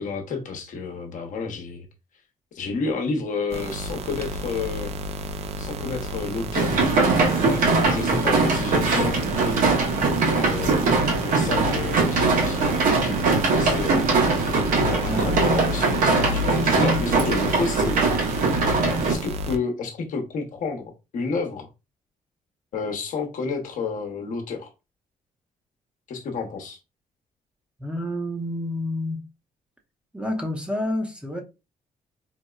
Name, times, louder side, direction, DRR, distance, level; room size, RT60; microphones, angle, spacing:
voice 1, 0.0-1.9 2.5-4.9 5.6-6.8 7.3-9.6 10.3-14.0 14.8-18.2 19.1-21.7 22.7-24.7 26.1-26.8, left 4 dB, 65° left, 0.8 m, -30 dB
sound 1, 3.5-19.6, equal, 50° right, 0.4 m, -31 dB
sound 2, 6.5-19.2, right 3 dB, 75° right, 1.0 m, -21 dB
voice 2, 27.8-29.2 30.1-31.4, left 1 dB, 5° right, 0.6 m, -28 dB
4.1 x 2.0 x 2.3 m
cardioid pair, 100°, 14 cm